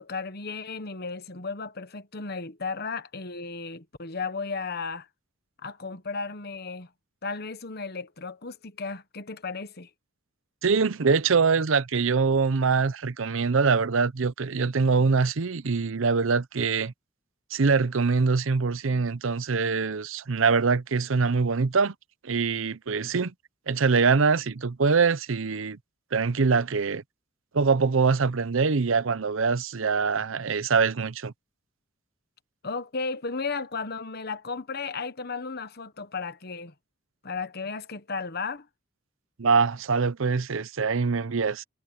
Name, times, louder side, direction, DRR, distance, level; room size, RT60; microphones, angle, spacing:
voice 1, 0.0-5.1 5.6-6.9 7.2-9.9 32.6-36.7 37.2-38.7, left 4 dB, 50° left, 1.2 m, -34 dB
voice 2, 10.6-16.9 17.5-21.9 22.2-23.3 23.7-25.8 26.1-27.0 27.5-31.3 39.4-41.6, right 4 dB, 70° right, 0.7 m, -24 dB
head